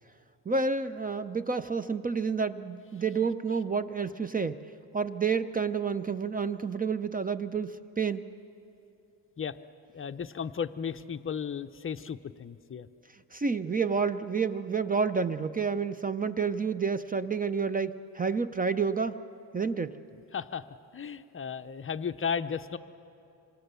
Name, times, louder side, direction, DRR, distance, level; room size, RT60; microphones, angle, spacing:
voice 1, 0.5-4.6 4.9-8.3 13.3-19.2 19.5-20.0, right 5 dB, 20° right, 13 dB, 0.5 m, -29 dB
voice 2, 9.9-12.9 20.3-20.7 20.9-22.8, left 7 dB, 30° left, 10 dB, 0.7 m, -34 dB
26.5 x 26.0 x 6.9 m, 2.7 s
cardioid pair, 110°, 40 cm